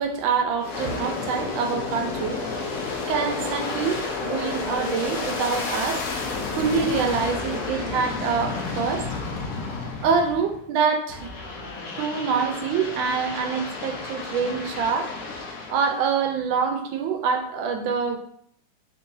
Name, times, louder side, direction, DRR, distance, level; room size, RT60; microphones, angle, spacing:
voice 1, 0.0-2.8 3.1-6.0 6.6-9.1 10.0-11.3 11.9-15.1 15.7-18.2, right 5 dB, 75° right, 5 dB, 1.3 m, -25 dB
Aircraft, 0.6-10.6 11.1-16.0, left 3 dB, 70° left, 0.8 m, -31 dB
3.7 x 3.0 x 2.6 m, 0.66 s
omnidirectional pair, 2.2 m